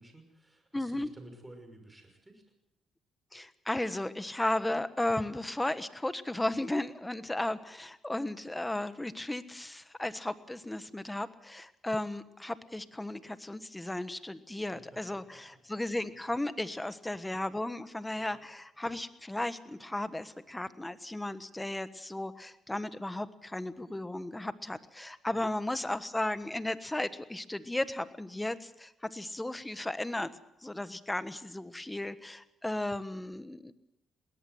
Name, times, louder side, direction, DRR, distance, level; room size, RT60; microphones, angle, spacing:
voice 1, 0.0-2.4 14.5-15.6 18.1-18.4 25.3-25.5, right 1 dB, 10° right, 6 dB, 5.8 m, -54 dB
voice 2, 0.7-1.1 3.3-15.2 15.7-30.3 30.6-33.7, left 1 dB, 10° left, 13 dB, 1.3 m, -35 dB
21.0 x 18.0 x 7.9 m, 0.82 s
cardioid pair, 90°, 0 cm